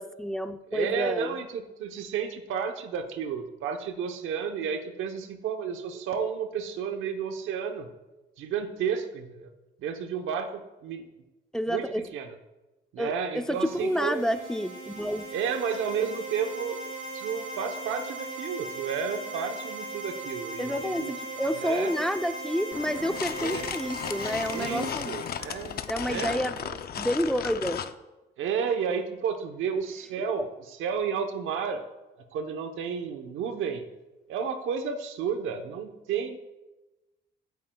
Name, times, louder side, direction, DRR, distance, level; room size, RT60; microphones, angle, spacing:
voice 1, 0.0-1.4 11.5-12.0 13.0-15.3 20.6-25.1 25.9-26.6 27.0-27.8 30.2-30.3, equal, 5° left, 9 dB, 0.6 m, -29 dB
voice 2, 0.7-7.9 8.4-9.5 9.8-11.1 11.7-12.3 12.9-14.3 15.3-16.8 17.1-21.2 21.6-21.9 23.4-23.7 24.5-25.8 26.1-26.8 28.4-30.5 30.8-31.8 32.3-33.8 34.3-36.4, right 6 dB, 85° right, 6 dB, 1.0 m, -32 dB
sound 1, 13.5-26.2, right 2 dB, 35° right, 3.7 m, -39 dB
sound 2, 22.7-27.9, left 8 dB, 50° left, 0.6 m, -35 dB
15.5 x 9.6 x 2.3 m, 1.1 s
cardioid pair, 90°, 20 cm